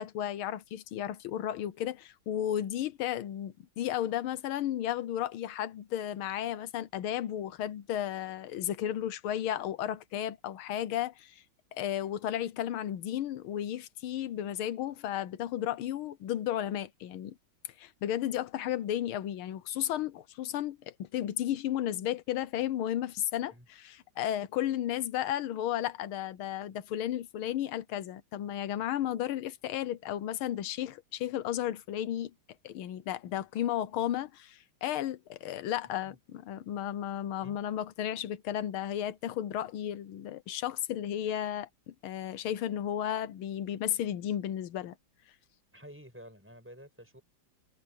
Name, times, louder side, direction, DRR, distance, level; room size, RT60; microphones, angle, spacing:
voice 1, 0.0-11.4 11.7-17.4 17.8-32.3 32.6-45.0, left 11 dB, 90° left, 1.7 m, -33 dB
voice 2, 45.7-47.2, equal, 5° right, 6.1 m, -50 dB
omnidirectional pair, 2.2 m